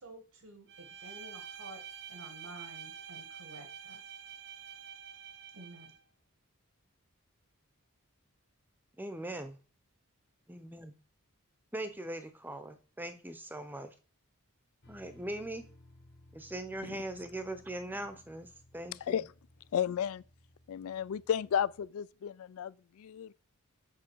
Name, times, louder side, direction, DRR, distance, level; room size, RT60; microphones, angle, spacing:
voice 1, 0.0-4.1 5.5-5.9, right 1 dB, 80° right, 1.4 m, -51 dB
Bowed string instrument, 0.7-6.0, right 7 dB, 50° right, 0.6 m, -47 dB
voice 2, 9.0-9.6 10.5-10.9 11.7-13.9 14.9-15.7 16.3-18.5 18.7-19.2, right 1 dB, 10° right, 0.7 m, -40 dB
sound 1, 14.8-21.9, left 1 dB, 50° left, 1.3 m, -60 dB
voice 3, 19.7-20.2 20.7-23.3, left 8 dB, 70° left, 0.3 m, -33 dB
7.5 x 5.6 x 4.6 m
head